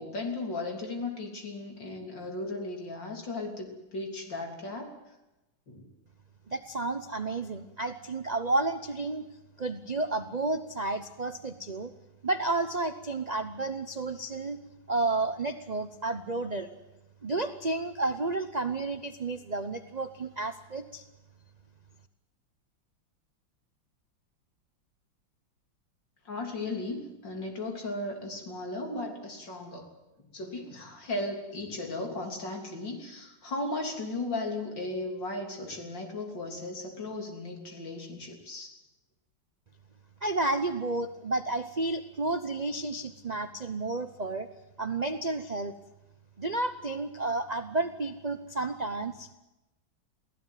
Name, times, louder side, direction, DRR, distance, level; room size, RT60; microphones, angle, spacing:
voice 1, 0.0-4.9 5.7-5.9 26.3-29.9 30.3-38.7, left 2 dB, 65° left, 2 dB, 4.1 m, -36 dB
voice 2, 6.5-9.3 9.6-11.9 12.2-14.6 14.9-16.7 17.2-21.0 40.2-44.5 44.8-45.7 46.4-49.3, right 2 dB, 45° right, 9 dB, 0.5 m, -31 dB
23.5 x 16.0 x 9.3 m, 1.0 s
omnidirectional pair, 2.1 m